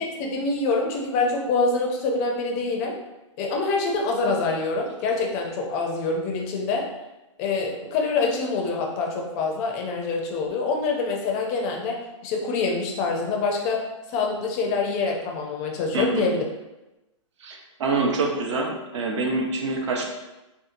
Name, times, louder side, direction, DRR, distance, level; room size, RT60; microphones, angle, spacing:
voice 1, 0.2-3.0 3.4-6.9 7.4-13.8 14.1-16.4, left 3 dB, 30° left, 0 dB, 0.4 m, -25 dB
voice 2, 15.9-16.2 17.4-20.1, right 3 dB, 65° right, 1 dB, 0.6 m, -26 dB
2.7 x 2.2 x 2.5 m, 1.0 s
hypercardioid pair, 145°, 16 cm